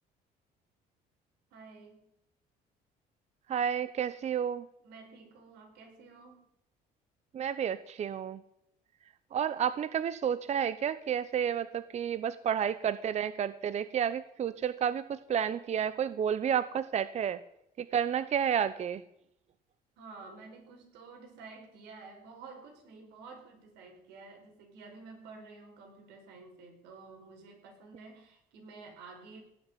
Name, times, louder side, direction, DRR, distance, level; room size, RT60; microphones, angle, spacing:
voice 1, 1.5-2.0 4.8-6.5 20.0-29.4, right 4 dB, 90° right, 3 dB, 4.8 m, -51 dB
voice 2, 3.5-4.7 7.3-8.4 9.3-17.4 17.8-19.0, right 8 dB, 40° right, 15 dB, 0.7 m, -31 dB
18.0 x 6.8 x 9.8 m, 0.79 s
cardioid pair, 110°, 17 cm